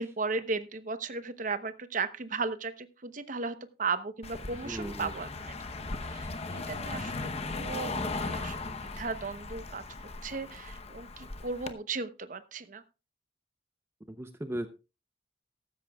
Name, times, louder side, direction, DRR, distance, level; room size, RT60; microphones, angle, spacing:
voice 1, 0.0-5.3 6.1-9.8 10.2-12.8, right 4 dB, 45° right, 11 dB, 0.9 m, -36 dB
Car passing by, 4.2-11.7, left 3 dB, 35° left, 0.9 m, -37 dB
voice 2, 4.5-5.1 14.1-14.7, right 1 dB, 15° right, 8 dB, 0.7 m, -37 dB
15.0 x 13.5 x 2.3 m, 0.30 s
head